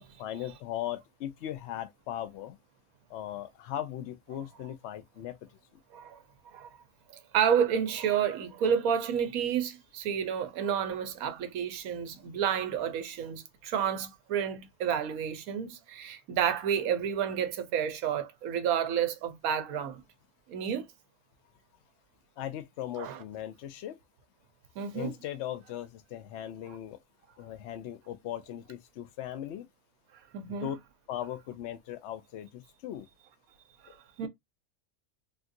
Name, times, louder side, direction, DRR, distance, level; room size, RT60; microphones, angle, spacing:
voice 1, 0.0-2.6 3.1-5.4 22.4-24.0 24.9-27.0 27.4-29.7 30.5-30.8 31.1-33.1 33.9-34.0 34.2-34.3, left 11 dB, 65° left, 0.8 m, -38 dB
voice 2, 7.3-20.0 20.5-20.8 23.0-23.2 24.8-25.1 30.3-30.7 33.8-34.3, right 8 dB, 80° right, 1.1 m, -30 dB
3.6 x 2.4 x 2.6 m
omnidirectional pair, 1.5 m